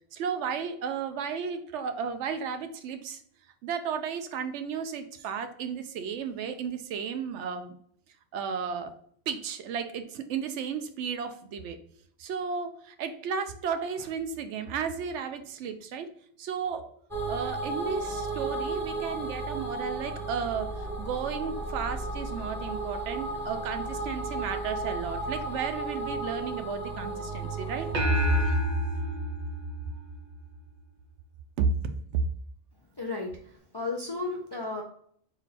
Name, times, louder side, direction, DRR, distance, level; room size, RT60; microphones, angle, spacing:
voice 1, 0.1-3.2 3.6-7.7 8.3-8.9 9.3-11.8 12.2-16.1 16.4-16.8 17.3-27.9 28.2-28.6 31.6-31.7 32.1-32.2, right 6 dB, 80° right, 8 dB, 0.9 m, -33 dB
sound 1, 17.1-28.4, right 2 dB, ahead, 0.9 m, -34 dB
sound 2, 27.9-30.6, equal, 45° right, 0.8 m, -27 dB
voice 2, 33.0-34.8, left 3 dB, 40° left, 0 dB, 0.4 m, -34 dB
3.8 x 2.4 x 4.1 m, 0.63 s
omnidirectional pair, 1.2 m